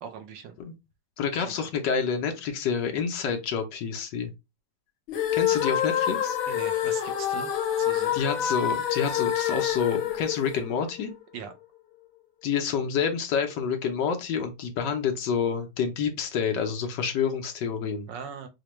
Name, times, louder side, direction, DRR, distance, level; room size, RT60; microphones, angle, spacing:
voice 1, 0.0-0.5 1.3-1.5 6.5-7.5 7.8-8.2 11.3-11.5 18.1-18.5, right 7 dB, 75° right, 1.2 m, -40 dB
voice 2, 1.2-4.3 5.3-6.4 8.1-11.1 12.4-18.1, left 6 dB, 70° left, 1.2 m, -28 dB
sound 1, 5.1-11.2, left 10 dB, 90° left, 1.6 m, -27 dB
4.9 x 2.1 x 3.0 m
omnidirectional pair, 2.1 m